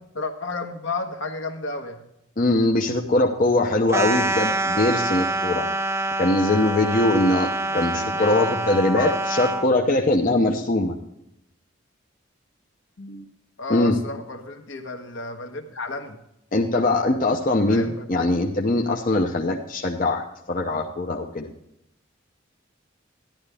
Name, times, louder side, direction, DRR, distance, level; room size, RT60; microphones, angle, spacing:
voice 1, 0.1-2.0 7.7-8.5 8.9-9.2 13.0-13.3 13.6-16.2 17.7-18.1, left 2 dB, 65° left, 5 dB, 1.3 m, -32 dB
voice 2, 2.4-5.7 6.2-9.1 9.4-11.0 13.7-14.0 16.5-21.5, left 2 dB, 40° left, 1 dB, 0.7 m, -22 dB
sound 1, 3.9-9.7, right 2 dB, 15° right, 0.6 m, -26 dB
12.0 x 11.0 x 3.4 m, 0.83 s
head